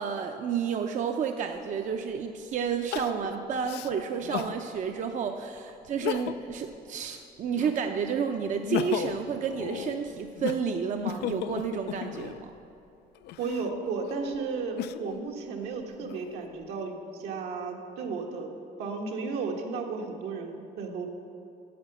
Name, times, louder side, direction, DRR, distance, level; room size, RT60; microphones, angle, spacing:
voice 1, 0.0-12.5, right 7 dB, 45° right, 5 dB, 0.6 m, -31 dB
Crying sobbing, 1.6-1.7 2.9-4.6 5.1-5.2 5.9-6.6 7.0-8.0 8.4-12.5 13.2-15.2 15.8-16.6, left 12 dB, 85° left, 0.4 m, -36 dB
voice 2, 13.4-18.5 18.8-21.1, right 4 dB, 80° right, 1 dB, 1.4 m, -34 dB
9.5 x 6.6 x 7.7 m, 2.7 s
cardioid pair, 110°, 17 cm